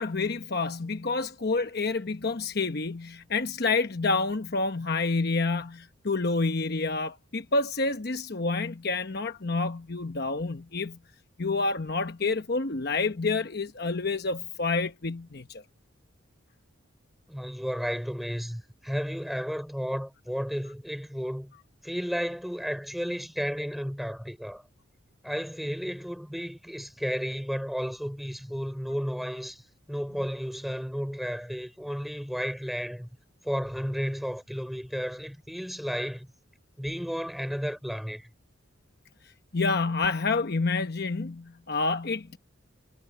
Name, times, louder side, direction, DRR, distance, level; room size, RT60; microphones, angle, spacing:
voice 1, 0.0-11.0 11.4-15.6 39.5-42.4, left 3 dB, 50° left, 1.0 m, -28 dB
voice 2, 17.3-21.5 21.8-24.6 25.2-29.6 29.9-33.1 33.4-36.3 36.8-38.3, equal, ahead, 4.6 m, -33 dB
head